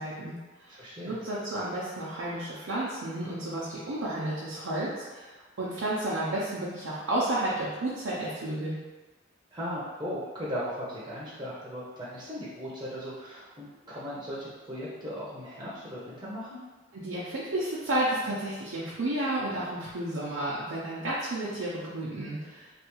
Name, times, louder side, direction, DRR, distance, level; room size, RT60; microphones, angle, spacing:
voice 1, 0.0-0.7 1.0-8.8 16.9-22.7, right 1 dB, 85° right, -8 dB, 0.6 m, -32 dB
voice 2, 0.7-1.2 9.5-16.6, equal, 25° right, -8 dB, 0.6 m, -37 dB
3.4 x 2.3 x 3.0 m, 1.3 s
head